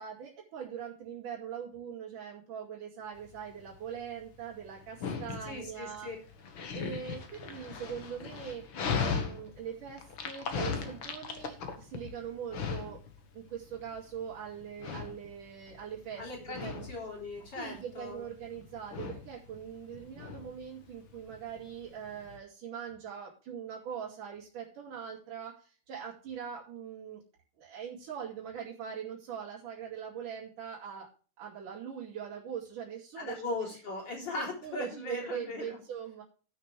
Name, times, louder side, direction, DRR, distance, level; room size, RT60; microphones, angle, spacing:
voice 1, 0.0-6.1 6.7-8.6 9.0-13.0 13.3-16.9 17.5-27.2 27.6-31.1 31.4-33.4 34.4-36.2, right 8 dB, 90° right, -7 dB, 4.1 m, -42 dB
Dog, 3.2-22.4, left 6 dB, 55° left, 1.7 m, -39 dB
voice 2, 5.5-6.2 16.2-18.3 33.2-35.8, left 2 dB, 35° left, -2 dB, 4.1 m, -39 dB
18.0 x 6.4 x 3.3 m, 0.38 s
omnidirectional pair, 3.5 m